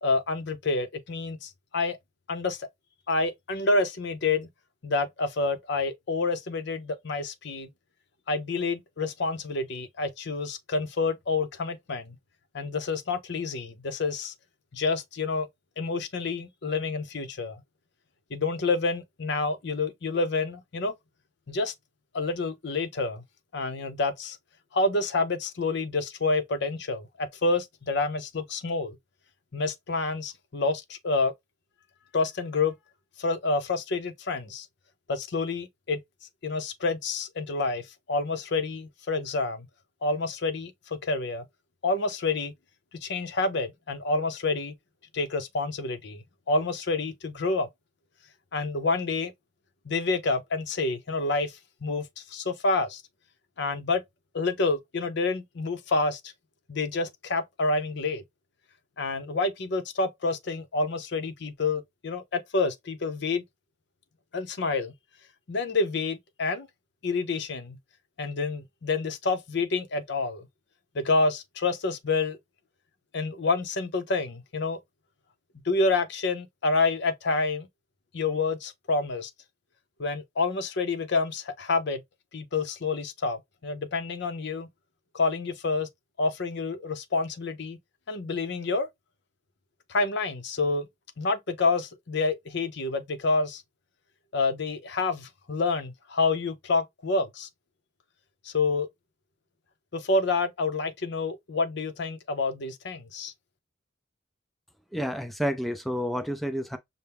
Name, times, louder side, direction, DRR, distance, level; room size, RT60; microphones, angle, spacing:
voice 1, 0.0-2.0 2.3-2.7 3.1-4.5 4.8-7.7 8.3-12.2 12.5-14.3 14.7-15.5 15.8-17.6 18.3-20.9 21.5-21.7 22.1-23.2 23.5-24.4 24.7-29.0 29.5-31.3 32.1-32.7 33.2-34.7 35.1-36.0 36.4-39.7 40.0-41.4 41.8-42.5 43.0-44.7 45.1-47.7 48.5-49.3 49.8-53.0 53.6-54.0 54.3-56.2 56.7-58.2 59.0-63.4 64.3-64.9 65.5-66.7 67.0-67.8 68.2-70.5 70.9-72.4 73.1-74.8 75.6-77.7 78.1-79.3 80.0-82.0 82.3-84.7 85.1-85.9 86.2-87.8 88.1-88.9 89.9-90.9 91.2-93.6 94.3-97.5 98.4-98.9 99.9-103.3, left 3 dB, 60° left, 0.6 m, -28 dB
voice 2, 104.9-106.8, equal, ahead, 0.4 m, -29 dB
5.7 x 2.1 x 3.4 m
head